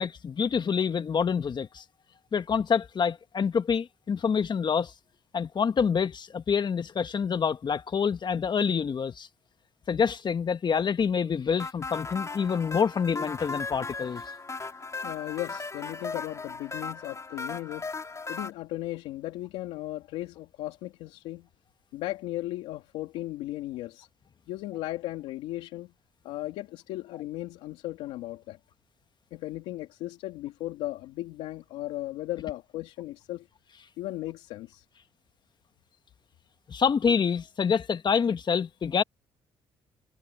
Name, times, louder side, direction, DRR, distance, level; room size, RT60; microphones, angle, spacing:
voice 1, 0.0-1.8 2.3-4.9 5.3-9.3 9.9-14.2 36.7-39.0, left 6 dB, 45° left, 1.5 m, -27 dB
sound 1, 11.6-18.5, left 4 dB, 30° left, 4.2 m, -37 dB
voice 2, 15.0-17.9 18.3-21.5 21.9-24.1 24.5-25.9 26.2-28.6 29.3-33.5 34.0-34.8, left 16 dB, 90° left, 2.8 m, -36 dB
supercardioid pair, 65°, 10 cm